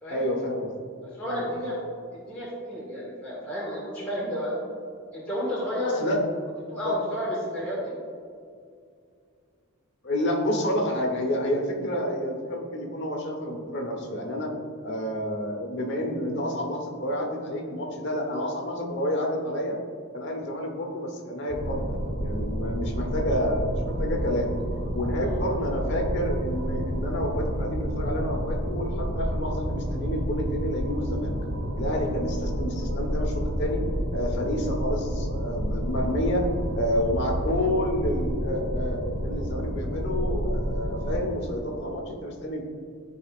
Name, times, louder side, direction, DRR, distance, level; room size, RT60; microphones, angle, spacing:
voice 1, 0.1-0.7 1.3-1.5 5.8-6.2 6.8-7.0 10.0-14.5 14.8-19.8 20.1-24.5 24.9-31.3 31.8-33.8 34.1-42.6, equal, 55° left, 1 dB, 1.2 m, -29 dB
voice 2, 1.0-1.8 2.1-4.5 5.1-5.9 6.7-7.9 25.2-25.4, equal, 5° left, -9 dB, 1.7 m, -32 dB
sound 1, 21.5-41.2, equal, 75° right, 1.0 m, -29 dB
13.5 x 4.8 x 2.5 m, 2.3 s
head